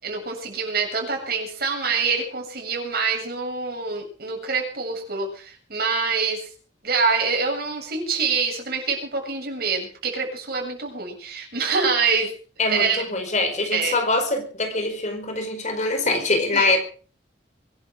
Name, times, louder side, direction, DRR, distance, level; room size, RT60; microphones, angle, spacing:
voice 1, 0.0-6.5 6.8-12.3 12.7-13.0 13.7-14.0 16.5-16.7, right 5 dB, 60° right, 7.5 m, -25 dB
voice 2, 12.6-16.8, left 2 dB, 40° left, 4.8 m, -23 dB
23.5 x 11.5 x 5.1 m
head